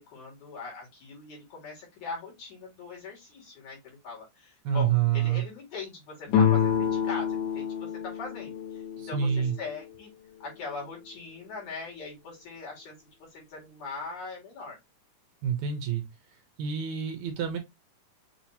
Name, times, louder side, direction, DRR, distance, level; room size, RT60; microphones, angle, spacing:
voice 1, 0.0-10.1 10.4-14.8, left 4 dB, 65° left, 3.4 m, -41 dB
voice 2, 4.6-5.4 9.0-9.6 15.4-16.0 16.6-17.6, right 8 dB, 75° right, 2.0 m, -27 dB
sound 1, 6.3-9.9, left 8 dB, 85° left, 2.5 m, -27 dB
6.3 x 2.9 x 2.8 m
omnidirectional pair, 3.6 m